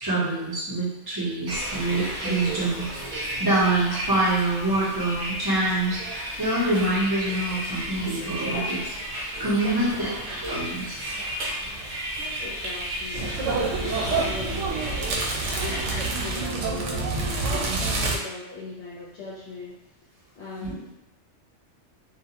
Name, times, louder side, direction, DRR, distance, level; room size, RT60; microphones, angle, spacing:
voice 1, 0.0-8.9 9.4-11.0 20.6-20.7, right 2 dB, 20° right, -8 dB, 0.8 m, -26 dB
Bus, 1.5-16.4, right 1 dB, 50° right, 0.9 m, -33 dB
voice 2, 9.7-10.2 12.4-15.0 15.5-19.8 20.3-20.9, left 2 dB, 65° left, -8 dB, 0.9 m, -39 dB
sound 1, 13.1-18.2, right 3 dB, 85° right, 0.9 m, -27 dB
2.4 x 2.2 x 2.8 m, 0.94 s
omnidirectional pair, 1.2 m